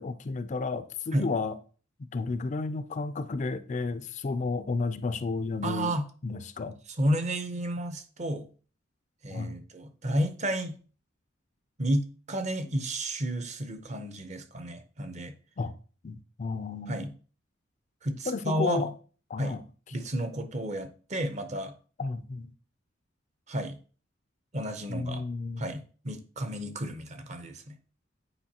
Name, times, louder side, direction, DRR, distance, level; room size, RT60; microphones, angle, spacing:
voice 1, 0.0-1.6 2.1-5.9 6.2-6.8 9.3-9.5 15.6-15.7 16.0-17.1 18.3-18.9 19.3-19.6 22.0-22.5 24.9-25.7, left 3 dB, 40° left, 0.4 m, -32 dB
voice 2, 5.6-6.1 7.0-8.5 9.2-10.8 11.8-15.3 16.9-17.1 18.0-18.9 19.4-19.6 19.9-21.7 23.5-23.8 24.5-25.2 25.6-27.8, right 1 dB, 40° right, 0.7 m, -31 dB
8.8 x 4.6 x 2.8 m
head